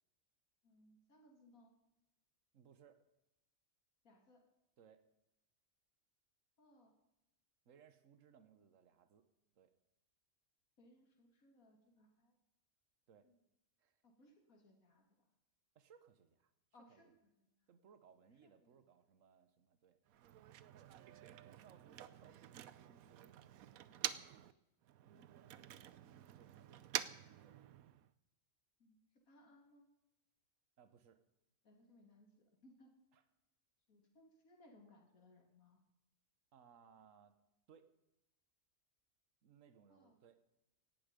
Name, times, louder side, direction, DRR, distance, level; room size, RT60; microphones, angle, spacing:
voice 1, 0.6-1.7 4.0-4.4 6.6-6.9 10.8-12.4 13.2-13.4 14.0-15.3 16.7-17.1 17.6-17.7 18.4-18.8 25.2-25.7 26.0-26.8 28.8-29.9 31.6-32.9 33.9-35.8 39.9-40.2, left 1 dB, 85° left, 2 dB, 2.9 m, -67 dB
voice 2, 2.5-3.0 4.8-5.0 7.6-9.2 9.5-9.7 13.1-13.3 13.8-14.0 15.7-16.5 16.9-17.1 17.7-20.0 20.7-20.8 21.4-23.3 25.1-25.3 26.3-26.8 27.4-27.6 30.8-31.2 33.1-33.2 36.5-37.4 37.7-37.9 39.4-40.3, right 7 dB, 65° right, 10 dB, 1.5 m, -66 dB
Motor vehicle (road), 20.1-24.5 24.8-28.1, right 11 dB, 85° right, 1.2 m, -48 dB
17.5 x 12.0 x 5.2 m, 0.89 s
omnidirectional pair, 1.4 m